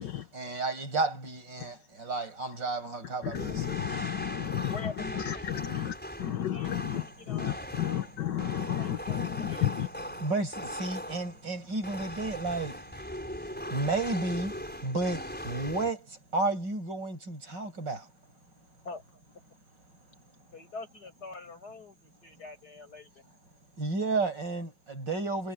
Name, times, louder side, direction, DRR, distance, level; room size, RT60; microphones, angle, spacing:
voice 1, 0.3-3.8 10.2-12.9 13.5-18.1 23.8-25.5, right 3 dB, 65° right, 7.8 m, -32 dB
voice 2, 3.2-9.9, left 11 dB, 70° left, 1.6 m, -32 dB
sound 1, 3.3-11.4 11.8-15.9, equal, 5° left, 4.8 m, -40 dB
voice 3, 4.7-5.9 6.2-8.1 8.8-9.7 18.8-19.0 20.5-23.2, left 3 dB, 55° left, 8.4 m, -46 dB
omnidirectional pair, 2.1 m